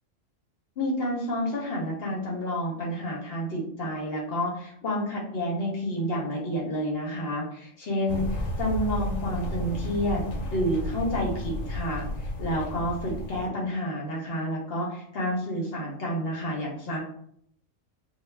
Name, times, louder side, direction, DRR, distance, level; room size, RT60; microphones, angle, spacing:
voice 1, 0.8-10.2 10.5-17.0, equal, 55° left, -2 dB, 0.8 m, -29 dB
sound 1, 8.1-13.5, left 1 dB, 85° left, 1.0 m, -32 dB
2.3 x 2.2 x 3.1 m, 0.67 s
omnidirectional pair, 1.3 m